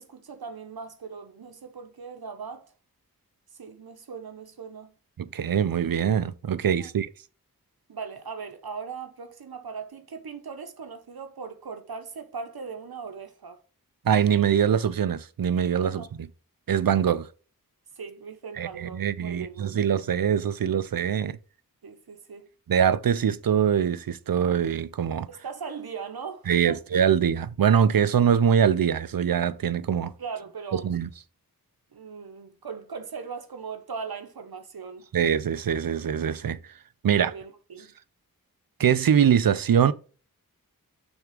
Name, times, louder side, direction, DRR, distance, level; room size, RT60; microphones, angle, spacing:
voice 1, 0.0-2.7 3.5-4.9 6.8-6.9 7.9-13.6 15.8-16.1 18.0-19.9 21.8-22.5 25.3-26.8 30.2-30.9 31.9-35.1 37.1-37.9, right 5 dB, 85° right, 1.0 m, -39 dB
voice 2, 5.2-7.1 14.0-16.3 16.7-17.3 18.6-21.4 22.7-25.3 26.5-30.1 30.8-31.1 35.1-36.6 37.0-37.3 38.8-39.9, right 8 dB, 70° right, 0.6 m, -23 dB
6.2 x 3.6 x 5.0 m
wide cardioid pair, 65°, 36 cm